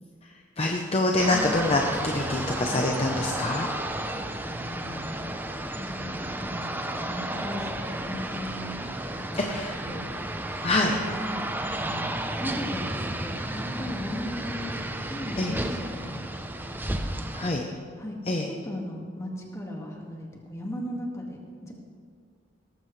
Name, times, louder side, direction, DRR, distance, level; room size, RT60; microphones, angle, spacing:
voice 1, 0.6-3.7 9.3-9.7 10.6-10.9 15.4-15.6 17.3-17.6 18.3-18.5, left 2 dB, 30° left, 1 dB, 0.8 m, -25 dB
sound 1, 1.2-17.5, right 1 dB, 10° right, 0.6 m, -33 dB
voice 2, 1.3-1.7 2.7-2.9 4.0-5.3 5.8-6.7 7.1-8.8 9.1-10.3 10.8-11.4 11.8-12.1 12.4-14.8 15.1-18.2 18.4-21.7, left 1 dB, 15° left, -1 dB, 1.9 m, -37 dB
18.0 x 14.5 x 3.3 m, 2.1 s
head